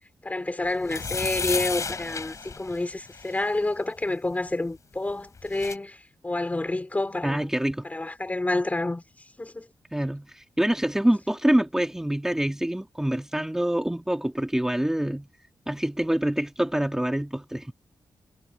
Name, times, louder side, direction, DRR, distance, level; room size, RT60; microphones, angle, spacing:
voice 1, 0.2-7.5 7.8-9.7, left 2 dB, 20° left, 3.5 m, -29 dB
sound 1, 0.8-3.4 5.1-5.2 5.4-5.8, left 4 dB, 45° left, 3.9 m, -32 dB
voice 2, 7.2-7.9 9.9-15.3 15.7-17.7, right 1 dB, 5° right, 1.8 m, -26 dB
wide cardioid pair, 110°, 7 cm